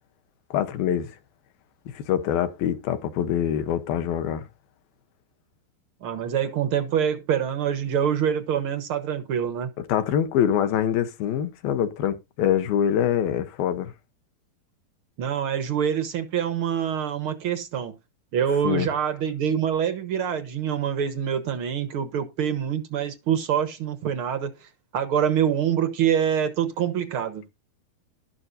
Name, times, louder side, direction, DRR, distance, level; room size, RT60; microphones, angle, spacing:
voice 1, 0.5-1.1 1.9-4.5 9.9-13.9 18.6-18.9, left 9 dB, 75° left, 2.9 m, -24 dB
voice 2, 6.0-9.7 15.2-17.9 18.3-27.5, right 8 dB, 90° right, 1.1 m, -25 dB
12.5 x 12.0 x 2.7 m
omnidirectional pair, 4.3 m